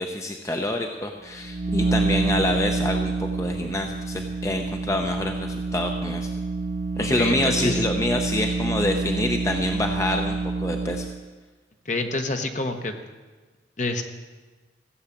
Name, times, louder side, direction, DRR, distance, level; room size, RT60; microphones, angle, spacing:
voice 1, 0.0-6.3 7.0-11.1, left 1 dB, 15° left, 3 dB, 0.7 m, -27 dB
sound 1, 1.3-11.2, right 3 dB, 45° right, 0.9 m, -27 dB
voice 2, 7.0-7.8 11.8-12.9 13.8-14.0, left 2 dB, 40° left, 5 dB, 1.1 m, -27 dB
15.5 x 8.0 x 7.3 m, 1.3 s
head